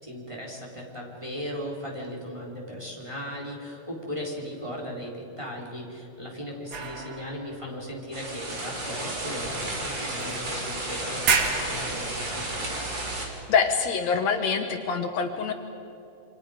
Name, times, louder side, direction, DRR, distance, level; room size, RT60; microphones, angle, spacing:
voice 1, 0.0-12.5, equal, 10° right, -2 dB, 3.8 m, -37 dB
sound 1, 6.7-8.7 9.4-9.5 10.2-10.8 11.1-12.7, right 5 dB, 60° right, 2.8 m, -31 dB
sound 2, 8.1-13.3, right 1 dB, 40° right, 4.0 m, -32 dB
voice 2, 13.5-15.5, left 6 dB, 70° left, 5 dB, 2.4 m, -25 dB
28.5 x 25.5 x 5.1 m, 2.7 s
omnidirectional pair, 3.3 m